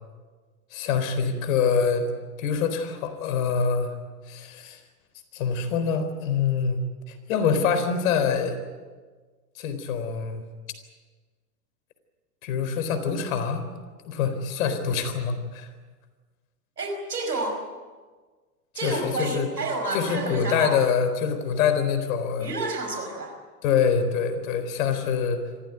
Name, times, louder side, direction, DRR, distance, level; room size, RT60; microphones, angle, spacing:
voice 1, 0.7-2.0 2.4-3.9 4.3-4.8 5.3-8.6 9.6-10.4 12.4-13.6 14.0-15.7 18.8-19.5 19.9-22.5 23.6-25.4, left 6 dB, 60° left, 9 dB, 4.1 m, -25 dB
voice 2, 16.8-17.6 18.7-20.7 22.4-23.3, right 2 dB, 90° right, 3 dB, 5.1 m, -30 dB
26.0 x 15.0 x 9.2 m, 1.4 s
hypercardioid pair, 100°, 47 cm